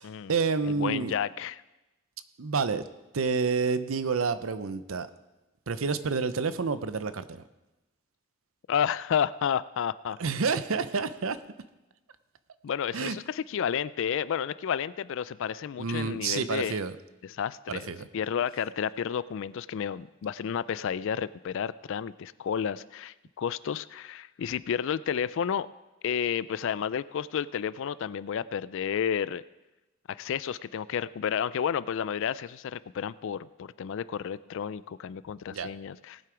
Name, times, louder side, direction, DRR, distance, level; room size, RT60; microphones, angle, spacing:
voice 1, 0.0-1.1 2.4-2.8 3.1-5.1 5.7-7.4 10.2-11.4 12.9-13.2 15.8-16.9 17.7-18.1 35.5-35.7, right 5 dB, 80° right, 13 dB, 0.7 m, -29 dB
voice 2, 0.6-1.6 8.7-10.2 12.6-16.8 17.2-17.9 18.1-25.7 26.0-29.4 30.1-36.2, left 8 dB, 65° left, 17 dB, 0.4 m, -31 dB
18.5 x 7.7 x 5.0 m, 1.0 s
head